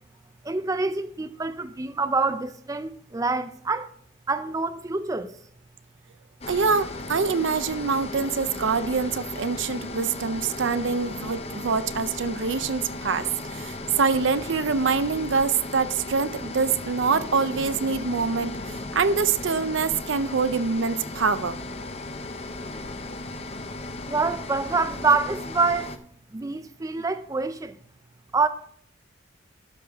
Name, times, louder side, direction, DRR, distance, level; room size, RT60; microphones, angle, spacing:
voice 1, 0.4-3.9 4.3-5.3 24.1-25.9 26.3-27.7 28.3-28.5, right 3 dB, 15° right, 0.4 m, -26 dB
sound 1, 6.4-26.0, left 2 dB, 30° left, 0.6 m, -36 dB
voice 2, 6.5-21.6, right 5 dB, 65° right, 0.6 m, -25 dB
11.5 x 6.5 x 3.5 m
head